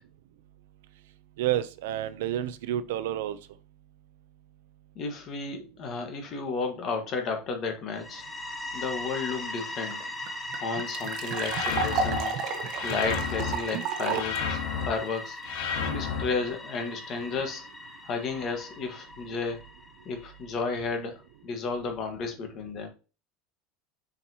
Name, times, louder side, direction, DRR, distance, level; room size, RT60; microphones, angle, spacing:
voice 1, 1.4-3.4 14.1-14.2, right 12 dB, 85° right, 0.6 m, -29 dB
voice 2, 4.9-8.2 8.7-10.0 10.6-12.4 12.8-14.6 14.8-15.4 15.8-17.6 18.0-19.6 20.0-22.9, left 4 dB, 35° left, 1.5 m, -32 dB
sound 1, 7.9-20.6, left 2 dB, 10° left, 1.0 m, -39 dB
sound 2, 9.6-9.7 9.9-10.0 10.3-14.4, right 5 dB, 45° right, 1.1 m, -32 dB
sound 3, 11.4-12.2 12.7-13.5 14.1-14.9 15.4-16.2, left 6 dB, 65° left, 1.6 m, -31 dB
7.2 x 5.1 x 2.9 m
supercardioid pair, 160°, 0 cm